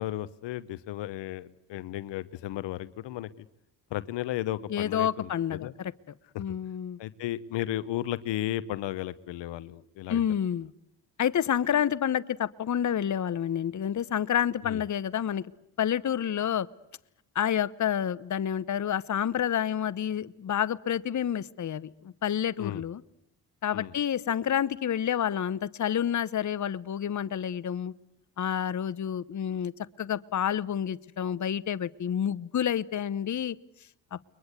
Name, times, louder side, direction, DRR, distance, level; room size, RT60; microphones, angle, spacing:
voice 1, 0.0-3.3 3.9-5.7 6.3-6.4 7.0-10.2 14.6-14.8 22.6-22.8 23.7-23.9, left 14 dB, 70° left, 16 dB, 1.0 m, -34 dB
voice 2, 4.7-5.9 6.4-7.0 10.1-10.7 11.2-15.4 15.8-16.7 17.3-23.0 23.6-27.9 28.4-29.7 30.0-33.6 34.1-34.2, left 9 dB, 40° left, 17 dB, 1.0 m, -29 dB
29.5 x 22.5 x 8.3 m, 0.81 s
hypercardioid pair, 50°, 45 cm